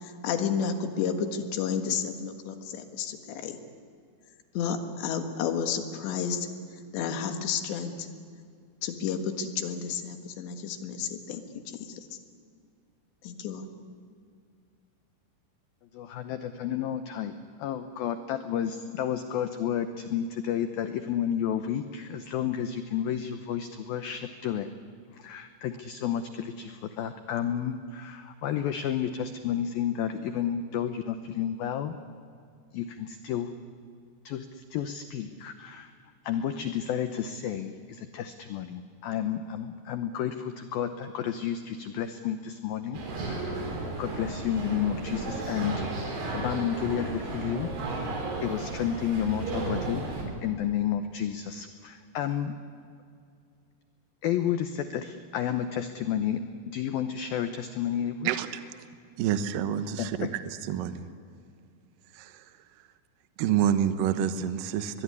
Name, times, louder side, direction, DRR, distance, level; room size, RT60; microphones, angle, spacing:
voice 1, 0.0-3.6 4.6-6.5 6.9-8.1 8.8-11.4 11.8-12.2 13.2-13.7, left 7 dB, 70° left, 7 dB, 3.7 m, -31 dB
voice 2, 15.9-17.3 17.6-24.7 25.1-32.0 32.7-33.5 34.2-35.9 36.2-43.7 44.0-45.8 46.3-48.0 48.4-50.1 50.4-52.5 54.2-58.3 60.0-60.3, left 9 dB, 85° left, 9 dB, 2.1 m, -31 dB
sound 1, 42.9-50.2, right 2 dB, 60° right, 6.2 m, -34 dB
voice 3, 59.2-60.3 60.7-61.0 62.2-62.4 63.4-65.0, right 9 dB, 80° right, 10 dB, 2.0 m, -27 dB
23.0 x 21.5 x 9.7 m, 2.3 s
omnidirectional pair, 5.5 m